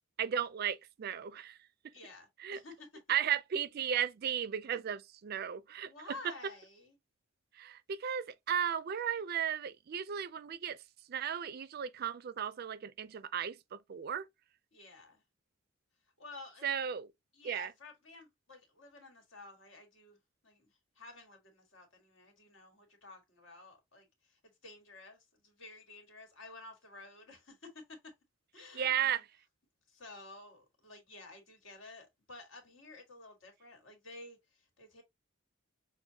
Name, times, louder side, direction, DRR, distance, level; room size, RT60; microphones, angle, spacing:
voice 1, 0.2-1.6 2.4-2.6 3.1-5.9 7.5-10.8 11.1-14.3 16.6-17.1 17.4-17.7 28.7-29.2, right 9 dB, 50° right, 0.4 m, -35 dB
voice 2, 1.9-2.9 5.8-7.0 14.7-15.2 16.2-16.9 17.3-20.2 20.4-28.1 28.5-29.2 29.9-35.0, left 2 dB, 70° left, 1.6 m, -52 dB
6.1 x 2.1 x 2.8 m
head